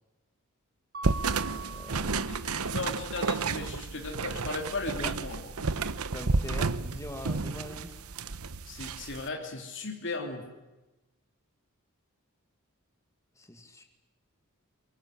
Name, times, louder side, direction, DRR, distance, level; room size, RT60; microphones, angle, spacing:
Mallet percussion, 0.9-2.8, right 3 dB, 50° right, 2.0 m, -42 dB
sound 1, 1.0-9.3, right 4 dB, 85° right, 1.0 m, -31 dB
voice 1, 1.5-2.9 5.0-5.1 6.1-8.0 13.4-13.8, left 1 dB, 15° left, 4 dB, 2.2 m, -43 dB
voice 2, 2.3-5.8 8.6-10.5, left 3 dB, 60° left, 2 dB, 3.2 m, -37 dB
23.5 x 22.0 x 9.9 m, 1.1 s
head